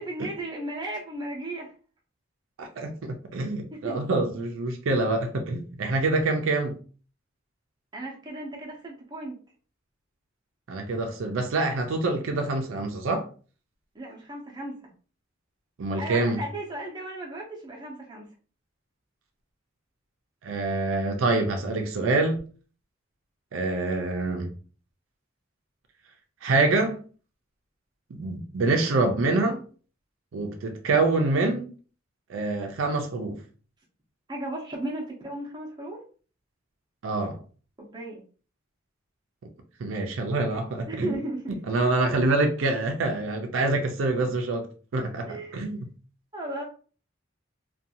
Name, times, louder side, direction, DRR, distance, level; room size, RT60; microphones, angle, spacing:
voice 1, 0.0-1.7 3.7-4.1 7.9-9.4 13.9-14.8 15.9-18.3 34.3-36.0 37.8-38.2 40.9-41.6 45.3-45.6 46.3-46.6, right 1 dB, 20° right, 0.5 m, -35 dB
voice 2, 2.6-6.8 10.7-13.2 15.8-16.4 20.4-22.4 23.5-24.5 26.4-27.0 28.1-29.6 30.3-31.7 32.3-33.4 37.0-37.4 39.8-41.1 41.7-44.7 44.9-45.9, right 2 dB, 80° right, 0.4 m, -26 dB
2.5 x 2.2 x 2.7 m
head